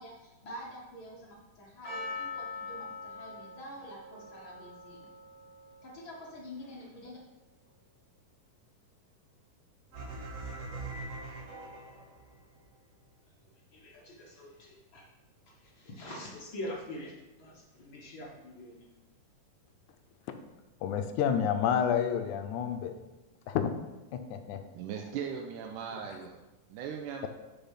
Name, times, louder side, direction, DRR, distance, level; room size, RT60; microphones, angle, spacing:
voice 1, 0.0-5.1 5.8-7.2 13.3-13.4 13.7-15.1 15.5-17.1 17.4-18.9, left 1 dB, 60° left, -3 dB, 1.3 m, -45 dB
Percussion, 1.8-7.1, left 4 dB, 35° left, 1.2 m, -43 dB
sound 1, 9.9-12.3, right 3 dB, 55° right, 2.9 m, -41 dB
voice 2, 20.8-22.9 23.5-23.7 24.1-24.6, left 8 dB, 75° left, 7 dB, 1.9 m, -29 dB
voice 3, 24.7-26.4 26.7-27.3, right 7 dB, 80° right, 2 dB, 2.0 m, -38 dB
6.9 x 5.9 x 5.6 m, 1.0 s
omnidirectional pair, 3.9 m